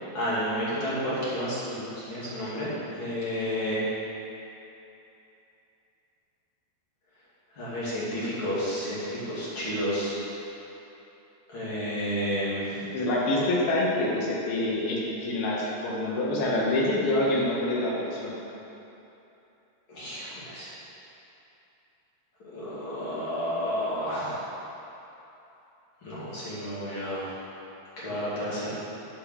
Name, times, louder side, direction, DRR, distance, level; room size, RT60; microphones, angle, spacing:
voice 1, 0.1-3.8 7.6-10.2 11.5-12.8 19.9-20.7 22.5-24.4 26.0-27.3 28.0-28.7, equal, 35° left, -10 dB, 2.5 m, -31 dB
voice 2, 12.9-18.3, left 1 dB, 70° left, -4 dB, 3.0 m, -26 dB
8.6 x 5.6 x 6.3 m, 3.0 s
omnidirectional pair, 4.8 m